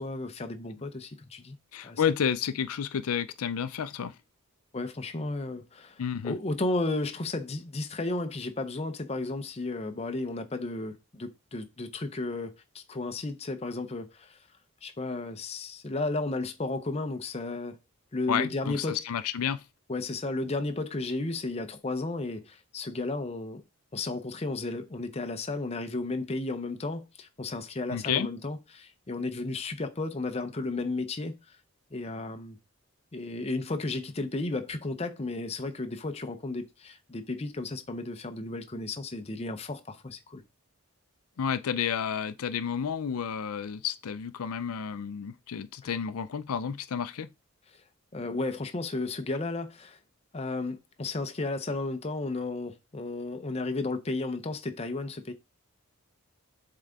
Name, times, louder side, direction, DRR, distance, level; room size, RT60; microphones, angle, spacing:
voice 1, 0.0-1.6 1.8-2.0 4.7-14.4 14.8-17.8 18.1-19.0 19.9-23.6 23.9-31.6 31.9-32.6 33.1-40.4 47.7-47.8 48.1-50.0 50.3-55.3, left 2 dB, 30° left, 0.6 m, -33 dB
voice 2, 1.7-4.2 6.0-6.4 18.3-19.6 27.9-28.3 41.4-47.3, left 7 dB, 80° left, 0.4 m, -31 dB
7.3 x 3.8 x 3.5 m
head